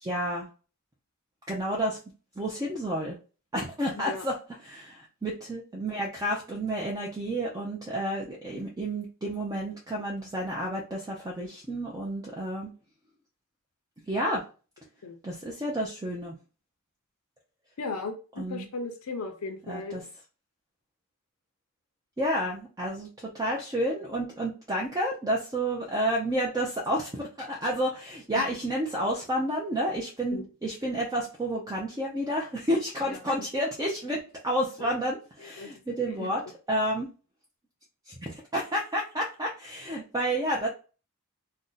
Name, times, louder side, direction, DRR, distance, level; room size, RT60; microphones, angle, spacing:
voice 1, 0.0-0.5 1.5-2.0 2.4-3.2 3.5-4.3 4.6-12.7 14.1-14.4 15.2-16.4 18.4-18.7 19.7-20.0 22.2-34.2 34.4-36.4 36.7-37.1 38.1-40.7, equal, 15° right, -2 dB, 0.4 m, -30 dB
voice 2, 3.9-4.3 15.0-15.2 17.8-20.0 28.3-28.6 30.3-30.4 33.0-33.5 34.8-34.9 35.4-35.7 36.1-36.3, left 3 dB, 70° left, 5 dB, 0.5 m, -37 dB
2.6 x 2.1 x 3.8 m, 0.35 s
head